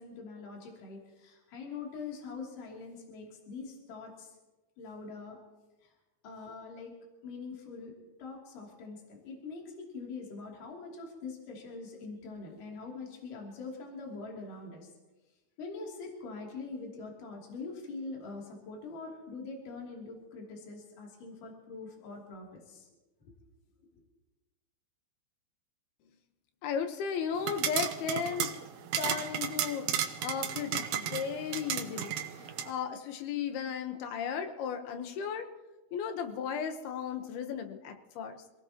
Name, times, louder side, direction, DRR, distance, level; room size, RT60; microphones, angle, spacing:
voice 1, 0.0-4.3 4.8-5.4 5.8-5.9 6.2-6.9 7.2-7.9 8.2-14.9 15.6-22.9 23.2-23.3, left 4 dB, 60° left, -2 dB, 4.4 m, -43 dB
voice 2, 26.6-28.6 29.0-35.5 35.9-38.6, left 7 dB, 80° left, 7 dB, 3.0 m, -35 dB
sound 1, 27.4-32.7, right 9 dB, 85° right, 1.6 m, -34 dB
27.0 x 17.5 x 2.9 m, 1.1 s
omnidirectional pair, 4.5 m